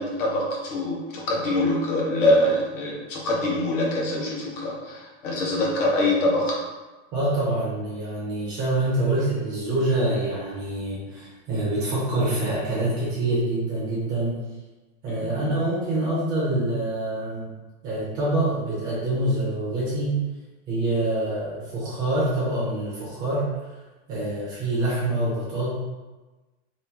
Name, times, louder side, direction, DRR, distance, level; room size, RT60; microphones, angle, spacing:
voice 1, 0.0-6.6 15.1-15.3, left 1 dB, 80° left, -3 dB, 1.1 m, -24 dB
voice 2, 7.1-14.4 15.0-17.5 17.8-20.2 20.7-23.4 24.1-25.7, right 1 dB, 10° right, -8 dB, 0.3 m, -26 dB
2.8 x 2.5 x 3.3 m, 1.2 s
supercardioid pair, 175°, 37 cm